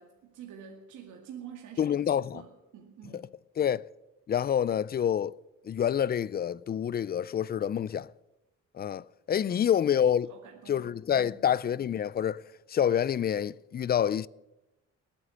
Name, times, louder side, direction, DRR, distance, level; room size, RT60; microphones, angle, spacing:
voice 1, 0.0-3.3 9.3-9.6 10.3-11.3, right 8 dB, 80° right, 2.2 m, -48 dB
voice 2, 1.8-2.4 3.1-3.2 3.6-3.8 4.3-5.4 5.6-8.1 8.7-10.3 10.7-12.4 12.7-14.3, left 9 dB, 35° left, 0.4 m, -27 dB
20.0 x 9.0 x 7.1 m
cardioid pair, 90°, 30 cm